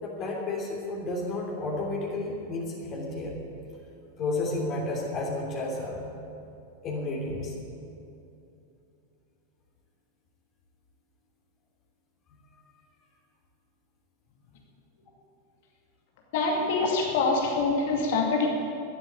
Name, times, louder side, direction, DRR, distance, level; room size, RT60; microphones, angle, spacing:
voice 1, 0.0-3.4 4.2-6.1 6.8-7.5, left 2 dB, 30° left, -2 dB, 3.2 m, -31 dB
voice 2, 16.3-18.5, left 4 dB, 50° left, 0 dB, 2.3 m, -25 dB
12.5 x 11.5 x 8.8 m, 2.7 s
figure-of-eight pair, 90°, 0 cm